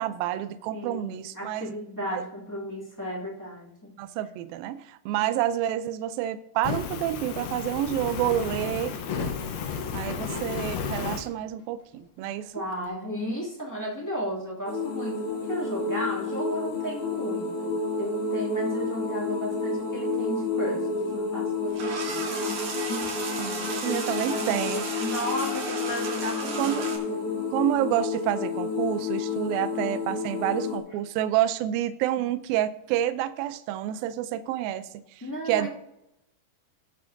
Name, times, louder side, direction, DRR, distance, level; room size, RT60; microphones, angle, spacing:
voice 1, 0.0-1.7 2.1-2.2 4.0-9.0 9.9-12.5 23.4-24.8 26.6-26.9 27.5-34.9 35.5-35.7, right 12 dB, 85° right, 11 dB, 2.2 m, -28 dB
voice 2, 0.7-3.9 5.2-5.3 12.5-17.7 18.0-22.6 22.9-23.1 23.4-27.5 35.2-35.7, equal, 10° left, -6 dB, 0.9 m, -34 dB
Fire, 6.6-11.2, left 6 dB, 75° left, 2.9 m, -32 dB
sound 1, 14.7-30.8, left 4 dB, 60° left, 2.3 m, -30 dB
sound 2, 21.7-27.0, right 4 dB, 60° right, 4.1 m, -34 dB
18.5 x 6.8 x 2.7 m, 0.85 s
omnidirectional pair, 4.6 m